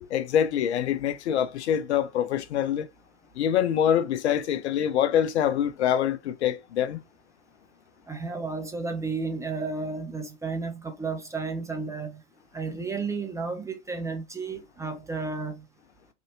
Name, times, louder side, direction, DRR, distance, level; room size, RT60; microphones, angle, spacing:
voice 1, 0.1-2.9 3.4-7.0, left 9 dB, 70° left, 0.6 m, -25 dB
voice 2, 8.1-12.2 12.5-15.6, right 4 dB, 10° right, 0.4 m, -32 dB
3.4 x 2.6 x 2.7 m
hypercardioid pair, 95°, 34 cm